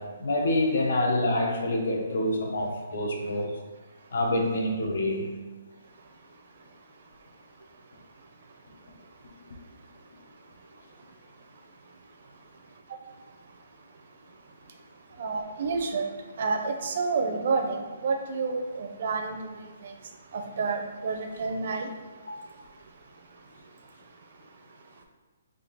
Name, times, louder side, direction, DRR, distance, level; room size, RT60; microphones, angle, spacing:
voice 1, 0.0-3.5 4.1-5.4 22.3-22.4, left 1 dB, 70° left, 1 dB, 0.8 m, -27 dB
voice 2, 5.8-25.0, right 4 dB, 55° right, 4 dB, 0.5 m, -34 dB
3.7 x 2.6 x 3.9 m, 1.4 s
hypercardioid pair, 165°, 0 cm